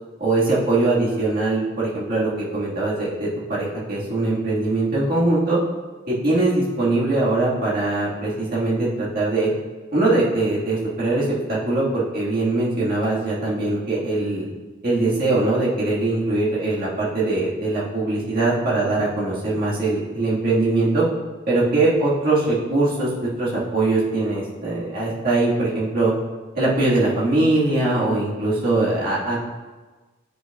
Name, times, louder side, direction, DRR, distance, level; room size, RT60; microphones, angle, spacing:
voice 1, 0.2-5.6 6.1-9.5 9.9-14.5 14.8-21.0 21.5-23.1 23.4-26.1 26.6-29.4, right 2 dB, 45° right, -8 dB, 1.6 m, -21 dB
9.3 x 5.4 x 2.3 m, 1.3 s
head